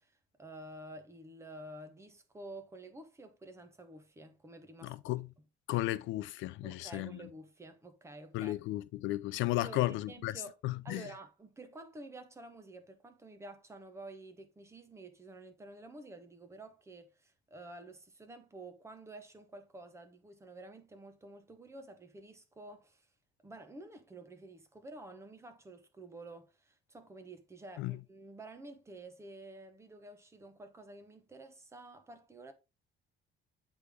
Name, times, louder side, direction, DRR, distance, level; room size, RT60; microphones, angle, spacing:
voice 1, 0.0-5.0 6.6-8.6 9.6-10.6 10.8-23.1 23.4-32.5, right 2 dB, 15° right, 0.9 m, -50 dB
voice 2, 4.8-5.3 5.7-7.2 8.3-11.1 27.8-28.0, left 17 dB, 75° left, 0.4 m, -34 dB
8.0 x 3.4 x 3.5 m
cardioid pair, 155°, 20 cm